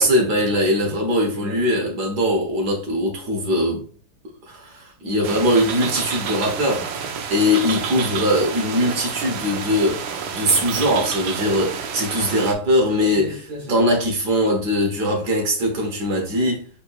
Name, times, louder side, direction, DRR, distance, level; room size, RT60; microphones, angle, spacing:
voice 1, 0.0-3.9 4.5-16.7, equal, 55° right, 1.7 m, -21 dB
sound 1, 5.2-12.5, right 6 dB, 80° right, 1.4 m, -29 dB
4.3 x 4.2 x 2.3 m
omnidirectional pair, 2.2 m